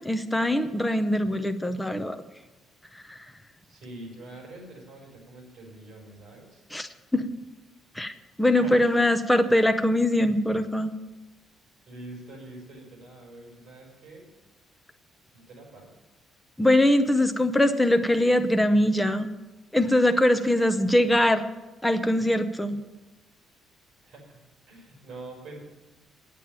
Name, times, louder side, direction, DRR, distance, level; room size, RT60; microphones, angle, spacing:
voice 1, 0.0-2.2 3.1-3.2 6.7-7.3 7.9-8.1 8.4-10.9 16.6-19.3 19.7-21.4 21.8-22.8, left 1 dB, 5° left, 7 dB, 0.6 m, -22 dB
voice 2, 3.6-6.6 8.6-8.8 11.9-14.3 15.3-15.9 24.0-24.4 24.7-25.6, right 2 dB, 50° right, -1 dB, 5.2 m, -45 dB
9.1 x 8.5 x 8.8 m, 1.1 s
cardioid pair, 175°, 0 cm